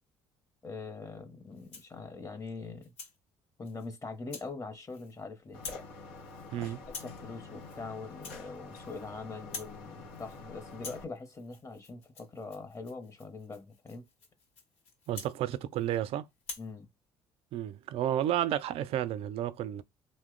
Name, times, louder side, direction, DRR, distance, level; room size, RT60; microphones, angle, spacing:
voice 1, 0.6-2.9 3.6-5.6 6.6-14.1 16.6-16.9, left 3 dB, 30° left, 0.8 m, -43 dB
Rattle (instrument), 1.5-2.0 2.5-3.2 3.6-3.9 4.3-4.5 4.8-5.2 5.5-5.9 6.2-6.5 6.8-7.2 7.6-7.8 8.1-9.1 9.4-9.8 10.1-10.4 10.7-16.0 16.4-16.7, left 4 dB, 70° left, 1.1 m, -47 dB
sound 1, 5.5-11.0, left 3 dB, 90° left, 0.7 m, -47 dB
voice 2, 15.1-16.3 17.5-19.8, right 11 dB, 60° right, 0.4 m, -31 dB
2.8 x 2.1 x 3.7 m
supercardioid pair, 70°, 11 cm